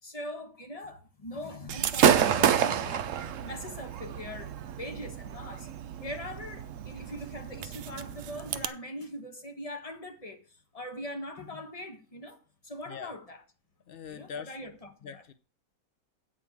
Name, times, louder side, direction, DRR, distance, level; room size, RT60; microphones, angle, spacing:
voice 1, 0.0-5.7 6.0-13.4 14.1-15.2, left 1 dB, 20° left, 1.4 m, -41 dB
Gunshot gunfire / Fireworks, 1.7-8.7, right 9 dB, 65° right, 0.8 m, -29 dB
voice 2, 13.9-14.6 15.0-15.3, left 7 dB, 80° left, 0.5 m, -42 dB
8.9 x 4.8 x 7.1 m
omnidirectional pair, 1.8 m